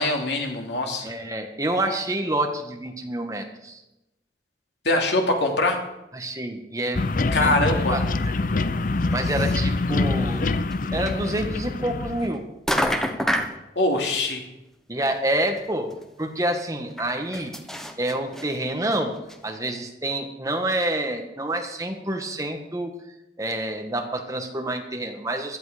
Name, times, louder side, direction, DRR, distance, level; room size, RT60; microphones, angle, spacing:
voice 1, 0.0-1.1 4.8-5.8 7.3-8.0 13.8-14.4, left 2 dB, 85° left, 2 dB, 2.8 m, -23 dB
voice 2, 1.0-3.8 6.1-8.3 9.1-10.5 10.9-12.4 14.9-15.9 16.2-17.5 18.0-19.1 19.4-22.9 23.4-25.6, right 1 dB, 20° right, 4 dB, 1.5 m, -28 dB
sound 1, 6.9-12.3, left 3 dB, 50° left, 0.6 m, -25 dB
sound 2, 10.7-10.8 11.1-11.2 12.2-12.4 12.7-13.6 15.1-15.2 15.6-15.7 15.9-16.0 17.0-18.5 18.9-19.0 19.3-19.4, equal, 5° left, 1.1 m, -26 dB
16.0 x 12.0 x 5.0 m, 0.92 s
head